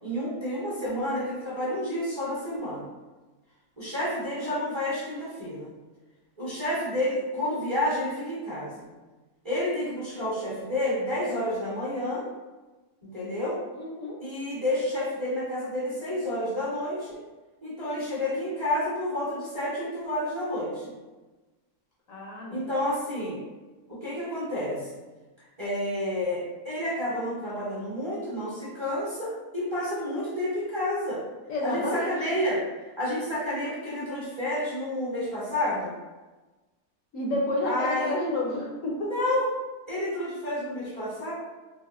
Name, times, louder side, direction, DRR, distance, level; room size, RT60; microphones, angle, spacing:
voice 1, 0.0-2.9 3.8-5.7 6.4-8.9 9.4-12.2 13.0-13.6 14.2-17.2 17.6-20.9 22.5-23.4 23.9-24.9 25.6-31.2 31.6-35.9 37.6-38.1 39.0-39.4 39.9-41.3, left 1 dB, 25° right, -10 dB, 0.8 m, -30 dB
voice 2, 13.7-14.2 22.1-22.7 31.5-32.2 37.1-39.3, left 1 dB, 70° left, -3 dB, 0.9 m, -30 dB
4.0 x 2.4 x 2.4 m, 1.2 s
omnidirectional pair, 1.6 m